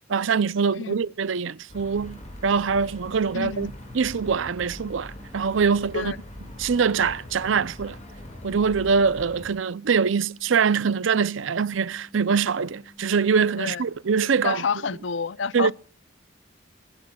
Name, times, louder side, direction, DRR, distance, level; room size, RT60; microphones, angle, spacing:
voice 1, 0.1-6.1 6.6-8.0 8.4-14.6 15.5-15.7, right 5 dB, 75° right, 0.5 m, -23 dB
sound 1, 1.7-9.5, equal, 35° left, 6.7 m, -42 dB
sound 2, 2.0-13.7, left 1 dB, 15° left, 3.2 m, -53 dB
voice 2, 3.3-3.7 5.9-6.2 13.6-13.8 14.4-15.7, left 5 dB, 65° left, 0.6 m, -28 dB
22.0 x 17.0 x 2.3 m
head